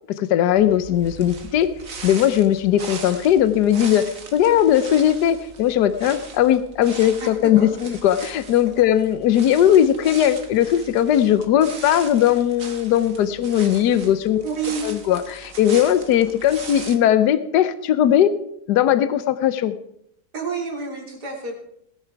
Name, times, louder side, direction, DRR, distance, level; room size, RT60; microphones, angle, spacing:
voice 1, 0.2-1.7 2.0-14.4 14.8-18.3 18.7-19.7, left 10 dB, 80° left, 13 dB, 1.3 m, -18 dB
sound 1, 0.5-17.0, right 4 dB, 55° right, 1.9 m, -39 dB
voice 2, 14.4-14.9 20.3-21.5, right 5 dB, 75° right, 0 dB, 3.8 m, -28 dB
19.5 x 10.5 x 4.6 m, 0.75 s
omnidirectional pair, 1.8 m